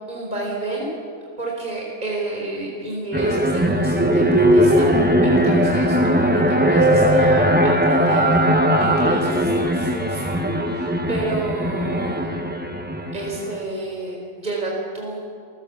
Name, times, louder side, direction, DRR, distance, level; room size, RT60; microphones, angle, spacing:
voice 1, 0.1-0.9 1.4-12.4 13.1-15.2, right 2 dB, 30° right, -2 dB, 4.5 m, -30 dB
sound 1, 3.1-13.6, equal, 5° right, 1.2 m, -19 dB
28.0 x 18.5 x 7.2 m, 2.4 s
omnidirectional pair, 1.6 m